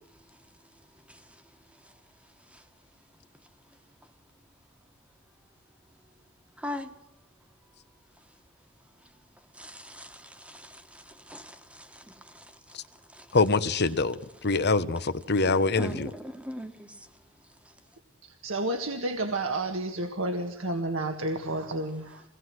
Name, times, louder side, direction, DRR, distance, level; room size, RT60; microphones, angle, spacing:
voice 1, 6.6-6.9 9.6-12.4 13.1-13.2 15.8-16.9, left 1 dB, 5° right, 1.7 m, -40 dB
voice 2, 13.3-14.2 14.4-16.1, left 3 dB, 55° left, 1.1 m, -24 dB
voice 3, 18.2-22.2, right 2 dB, 70° right, 1.9 m, -31 dB
23.5 x 19.0 x 7.9 m
head